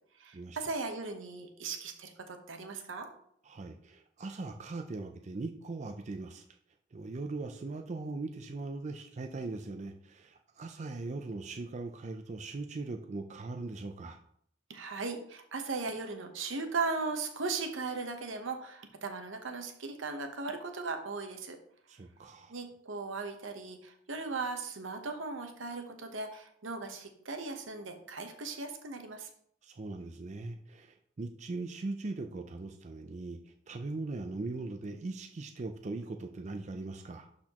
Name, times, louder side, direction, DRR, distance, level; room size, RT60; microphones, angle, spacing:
voice 1, 0.2-3.1 14.7-21.6 22.5-29.3, right 4 dB, 80° right, 5 dB, 1.0 m, -37 dB
voice 2, 3.4-6.4 6.9-14.2 21.9-22.6 29.6-37.3, right 3 dB, 35° right, 5 dB, 0.4 m, -40 dB
11.5 x 4.2 x 2.9 m, 0.67 s
head